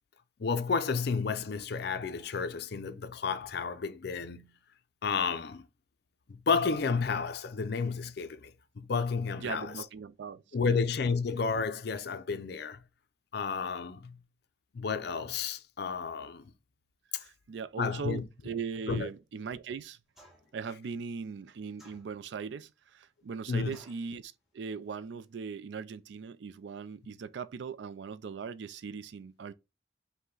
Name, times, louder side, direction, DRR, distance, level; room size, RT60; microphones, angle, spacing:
voice 1, 0.4-4.5 5.0-5.6 6.3-9.7 10.5-12.8 13.3-14.2 14.7-16.5 17.8-18.2 18.9-19.1 23.5-23.8, left 5 dB, 55° left, 0.5 m, -31 dB
voice 2, 9.4-10.8 17.2-20.0 20.5-29.5, right 5 dB, 60° right, 0.3 m, -40 dB
sound 1, 20.2-20.6 21.8-22.5 23.7-24.1, left 1 dB, ahead, 0.8 m, -58 dB
5.4 x 2.2 x 3.8 m
head